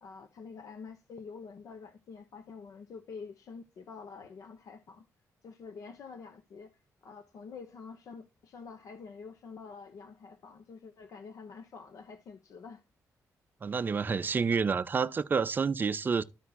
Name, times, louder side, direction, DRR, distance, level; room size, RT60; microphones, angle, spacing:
voice 1, 0.0-5.1 5.4-12.8, left 5 dB, 65° left, 0.8 m, -47 dB
voice 2, 13.6-16.2, right 5 dB, 30° right, 0.5 m, -29 dB
13.5 x 4.8 x 2.3 m
cardioid pair, 115°, 6 cm